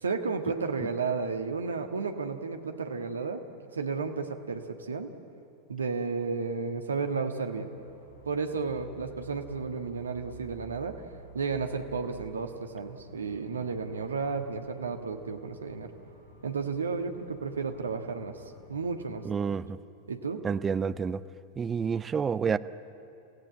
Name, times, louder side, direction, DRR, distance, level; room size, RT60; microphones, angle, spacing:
voice 1, 0.0-3.4 3.7-5.1 5.7-7.7 8.2-10.9 11.3-15.9 16.4-18.4 18.7-19.2 20.1-20.4, right 4 dB, 70° right, 1.6 m, -32 dB
sound 1, 7.7-19.2, right 5 dB, 85° right, 3.2 m, -52 dB
voice 2, 19.2-19.8 20.4-21.2 21.6-22.6, right 6 dB, 20° right, 0.6 m, -29 dB
28.0 x 16.5 x 8.7 m
figure-of-eight pair, 90°, 0 cm